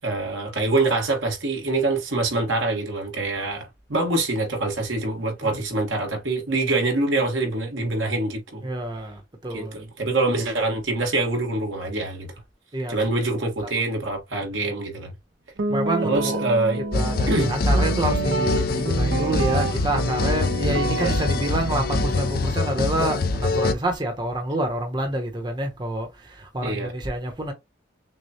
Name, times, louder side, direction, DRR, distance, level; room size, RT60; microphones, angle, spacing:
voice 1, 0.0-8.7 9.5-12.3 12.9-15.1 16.0-16.8 17.3-17.5 20.7-21.2 26.6-26.9, right 2 dB, 90° right, 1.6 m, -25 dB
voice 2, 8.6-9.8 12.7-12.9 15.7-16.4 16.9-27.5, right 1 dB, 25° right, 0.9 m, -27 dB
Guitar, 15.6-23.8, right 3 dB, 70° right, 0.7 m, -29 dB
sound 1, 16.9-23.7, left 2 dB, 50° left, 0.5 m, -24 dB
6.3 x 2.3 x 2.9 m
head